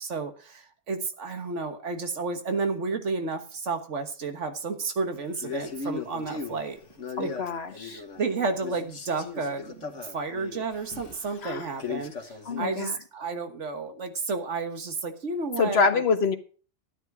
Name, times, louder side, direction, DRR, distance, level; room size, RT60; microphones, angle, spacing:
voice 1, 0.0-6.8 7.2-7.3 7.7-16.0, right 4 dB, 80° right, 7 dB, 1.7 m, -32 dB
Male speech man speaking, 5.4-8.3 8.6-12.7, left 4 dB, 85° left, 1.9 m, -38 dB
voice 2, 7.2-8.0 11.4-11.6 12.5-12.9 15.6-16.4, left 5 dB, 60° left, 9 dB, 1.4 m, -25 dB
12.0 x 9.8 x 4.8 m, 0.39 s
omnidirectional pair, 1.2 m